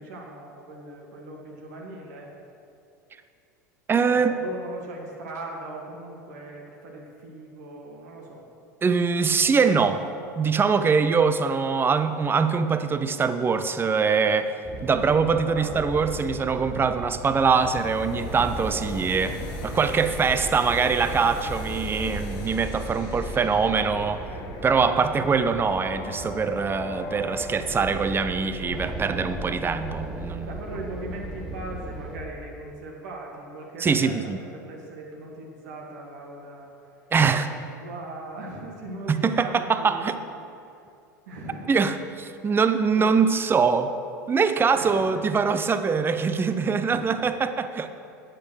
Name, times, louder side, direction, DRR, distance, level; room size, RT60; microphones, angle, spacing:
voice 1, 0.0-2.3 4.1-8.4 15.2-15.9 30.5-34.2 34.5-36.7 37.4-40.2 41.3-41.7 42.9-43.3 44.7-45.1 46.9-47.7, right 2 dB, 65° right, -1 dB, 2.4 m, -39 dB
voice 2, 3.9-4.4 8.8-10.0 10.4-14.6 14.8-24.2 24.6-30.5 33.8-34.4 37.1-37.5 39.1-40.1 41.7-43.9 44.3-47.9, right 5 dB, 20° right, 11 dB, 0.7 m, -23 dB
sound 1, 14.6-32.2, right 1 dB, 5° right, 1.6 m, -36 dB
sound 2, 17.5-27.5, left 2 dB, 50° left, 1.7 m, -41 dB
10.5 x 8.4 x 6.5 m, 2.6 s
figure-of-eight pair, 80°, 10 cm